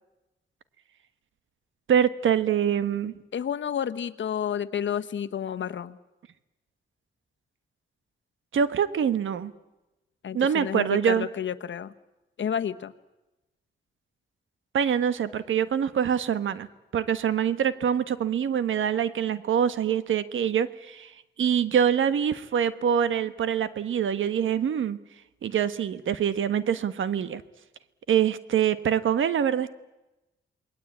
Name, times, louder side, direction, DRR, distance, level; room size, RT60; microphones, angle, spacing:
voice 1, 1.9-3.1 8.5-9.5 10.3-11.3 14.7-16.7 16.9-25.0 25.4-27.4 28.1-29.7, right 8 dB, 90° right, 13 dB, 1.4 m, -25 dB
voice 2, 3.3-6.0 10.2-11.9 12.4-12.9, left 8 dB, 75° left, 10 dB, 1.3 m, -30 dB
28.0 x 21.0 x 8.7 m, 0.99 s
cardioid pair, 95°, 20 cm